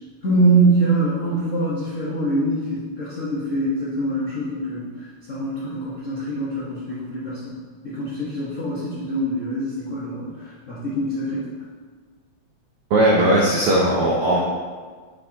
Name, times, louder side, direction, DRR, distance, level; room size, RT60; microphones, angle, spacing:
voice 1, 0.2-7.6 7.8-11.4, right 2 dB, 70° left, -9 dB, 0.7 m, -24 dB
voice 2, 12.9-14.4, right 1 dB, 80° right, -3 dB, 1.2 m, -18 dB
8.7 x 4.4 x 2.8 m, 1.5 s
omnidirectional pair, 3.4 m